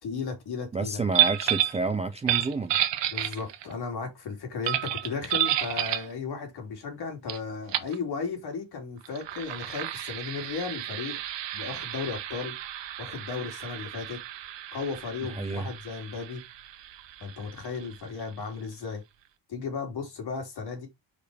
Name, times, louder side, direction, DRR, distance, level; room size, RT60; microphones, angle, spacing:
voice 1, 0.0-1.0 3.1-11.2 11.5-12.5 13.0-14.2 14.7-16.4 17.2-19.0 19.5-20.9, left 5 dB, 60° left, 3.2 m, -35 dB
voice 2, 0.7-2.7 15.4-15.7, right 3 dB, 15° right, 0.3 m, -29 dB
sound 1, 1.1-1.8 2.2-3.7 4.6-6.1 7.3-7.4 7.7-7.9 9.0-18.3, right 12 dB, 75° right, 1.0 m, -31 dB
5.2 x 4.5 x 4.8 m
wide cardioid pair, 180°, 43 cm